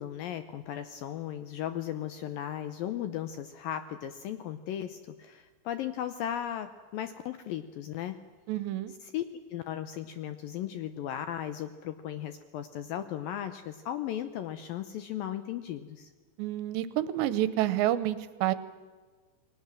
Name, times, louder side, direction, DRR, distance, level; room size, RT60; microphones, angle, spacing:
voice 1, 0.0-8.2 8.9-9.2 9.5-16.1, left 11 dB, 75° left, 11 dB, 2.1 m, -36 dB
voice 2, 8.5-8.9 16.4-18.5, right 13 dB, 80° right, 15 dB, 3.2 m, -28 dB
29.5 x 21.0 x 7.5 m, 1.4 s
omnidirectional pair, 5.0 m